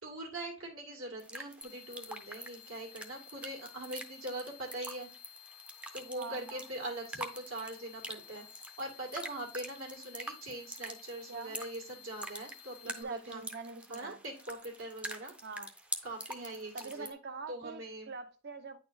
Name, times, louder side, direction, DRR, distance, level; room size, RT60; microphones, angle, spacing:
voice 1, 0.0-5.1 5.9-13.4 13.9-15.3 16.0-17.1 17.5-18.1, right 1 dB, 70° right, 1 dB, 1.9 m, -42 dB
sound 1, 1.2-17.1, right 1 dB, 5° right, 0.5 m, -46 dB
sound 2, 1.6-13.0, left 13 dB, 90° left, 0.5 m, -55 dB
voice 2, 6.2-6.6 11.3-11.6 12.8-14.2 15.4-15.7 16.7-18.8, right 4 dB, 50° right, 10 dB, 0.7 m, -44 dB
9.3 x 4.2 x 2.5 m, 0.34 s
head